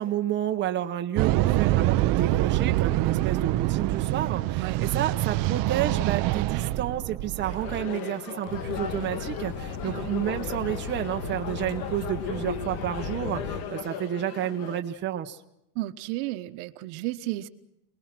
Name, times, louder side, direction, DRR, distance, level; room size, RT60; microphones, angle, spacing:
voice 1, 0.0-15.4, right 11 dB, 25° right, 5 dB, 1.0 m, -30 dB
sound 1, 1.2-7.9, right 16 dB, 50° right, 0.8 m, -25 dB
sound 2, 7.4-14.8, left 7 dB, 85° left, 2.9 m, -37 dB
sound 3, 8.5-13.6, left 5 dB, 55° left, 2.6 m, -36 dB
voice 2, 15.7-17.5, right 17 dB, 80° right, 8 dB, 1.4 m, -33 dB
27.0 x 20.5 x 6.1 m, 0.81 s
cardioid pair, 175°, 43 cm